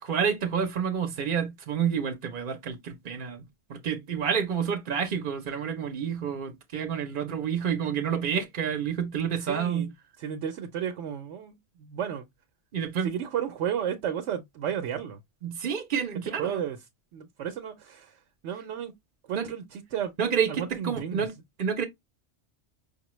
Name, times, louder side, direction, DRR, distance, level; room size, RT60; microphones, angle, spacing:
voice 1, 0.0-3.4 3.7-9.9 12.7-13.1 15.4-16.6 19.3-19.5 20.2-21.3 21.6-21.8, right 7 dB, 50° right, 0.7 m, -29 dB
voice 2, 9.4-9.9 10.2-12.3 13.0-15.2 16.4-16.8 17.1-18.9 19.3-20.1 20.5-21.3, right 9 dB, 80° right, 0.9 m, -33 dB
5.4 x 2.1 x 3.0 m
omnidirectional pair, 1.2 m